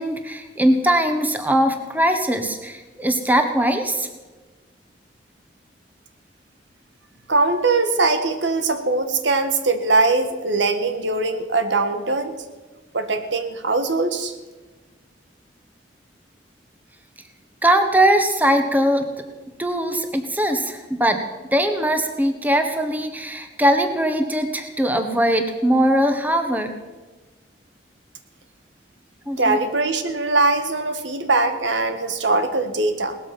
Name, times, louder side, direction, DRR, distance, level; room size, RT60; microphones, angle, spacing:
voice 1, 0.0-4.1 17.6-19.1 19.6-21.2 21.5-26.7 29.3-29.6, right 1 dB, 10° right, 6 dB, 1.3 m, -20 dB
voice 2, 7.3-12.4 12.9-14.3 29.4-33.2, right 3 dB, 85° right, 9 dB, 1.6 m, -21 dB
18.5 x 13.0 x 6.0 m, 1.2 s
head